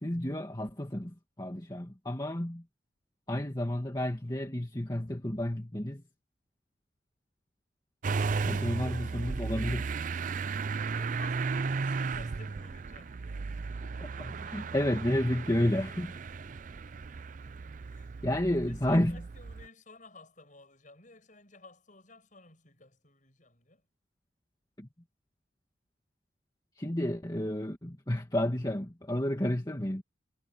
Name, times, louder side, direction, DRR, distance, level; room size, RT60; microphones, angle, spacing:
voice 1, 0.0-2.6 3.3-6.0 8.4-9.9 14.0-16.2 18.2-19.2 24.8-24.9 26.8-30.0, left 1 dB, 20° left, 2.1 m, -31 dB
Motor vehicle (road) / Engine starting, 8.0-19.7, right 4 dB, 40° right, 0.4 m, -35 dB
voice 2, 10.6-13.5 17.9-18.1 18.4-23.9, left 3 dB, 40° left, 7.7 m, -55 dB
head